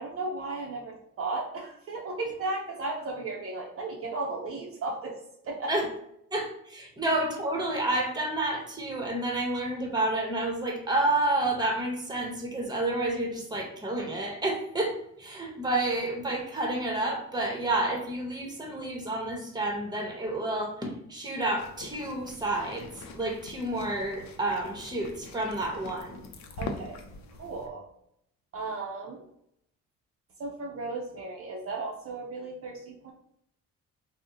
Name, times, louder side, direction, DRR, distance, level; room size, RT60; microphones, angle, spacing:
voice 1, 0.0-5.2 5.4-5.7 26.6-27.0 27.4-27.9 28.5-29.2 30.4-33.1, right 3 dB, 50° right, 0 dB, 0.5 m, -35 dB
voice 2, 6.3-26.2, right 2 dB, 15° right, 2 dB, 0.8 m, -30 dB
sound 1, 21.6-27.7, left 3 dB, 65° left, 0.5 m, -43 dB
2.6 x 2.0 x 3.7 m, 0.74 s
cardioid pair, 90°, 30 cm